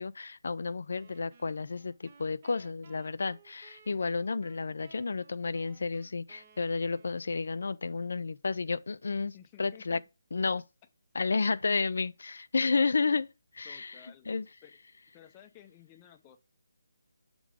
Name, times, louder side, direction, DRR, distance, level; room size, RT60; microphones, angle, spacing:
voice 1, 0.0-10.0 10.3-10.6 11.1-13.3 13.5-14.5, left 4 dB, 65° left, 0.4 m, -31 dB
sound 1, 0.9-7.5, right 5 dB, 30° right, 0.8 m, -59 dB
voice 2, 9.3-10.0 13.6-14.3 14.6-14.8 15.1-16.4, left 10 dB, 15° left, 0.6 m, -54 dB
7.1 x 3.7 x 4.8 m
hypercardioid pair, 170°, 0 cm